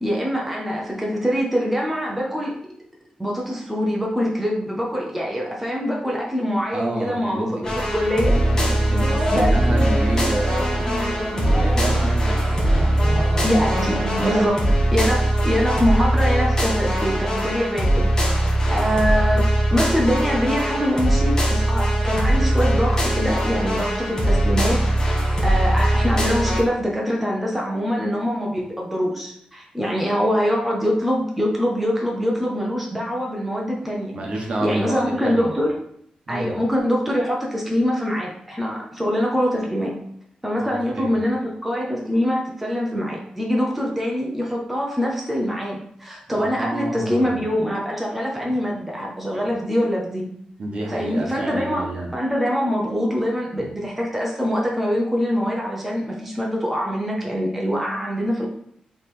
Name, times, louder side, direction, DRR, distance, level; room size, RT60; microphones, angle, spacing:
voice 1, 0.0-2.6 3.2-8.3 9.3-9.8 13.4-25.1 25.4-35.8 36.3-39.9 40.4-50.3 50.9-58.5, equal, 5° right, -3 dB, 0.6 m, -24 dB
voice 2, 6.7-7.7 8.7-11.1 11.5-13.0 13.7-13.8 14.2-14.4 15.0-15.2 34.1-35.5 36.3-36.5 40.6-41.2 46.3-47.4 48.4-48.5 50.6-52.1, right 1 dB, 50° right, 0 dB, 0.9 m, -30 dB
sound 1, 7.6-26.6, right 1 dB, 25° left, 1.1 m, -21 dB
sound 2, 8.1-14.5, equal, 20° right, 1.4 m, -29 dB
3.4 x 3.1 x 4.3 m, 0.69 s
wide cardioid pair, 170°, 2 cm